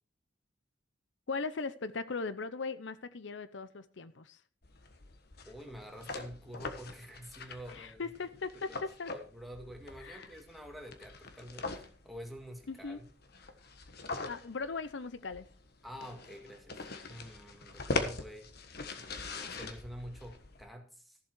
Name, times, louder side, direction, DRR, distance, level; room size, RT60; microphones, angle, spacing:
voice 1, 1.3-4.4 7.7-9.1 10.0-10.3 12.7-13.0 14.3-15.5, left 4 dB, 80° left, 14 dB, 0.7 m, -39 dB
sound 1, 4.6-20.7, left 3 dB, 60° left, 1.4 m, -42 dB
voice 2, 5.4-8.1 8.7-8.8 9.1-13.1 15.8-18.5 19.0-21.2, equal, ahead, 2 dB, 2.0 m, -48 dB
14.5 x 7.4 x 4.6 m, 0.38 s
head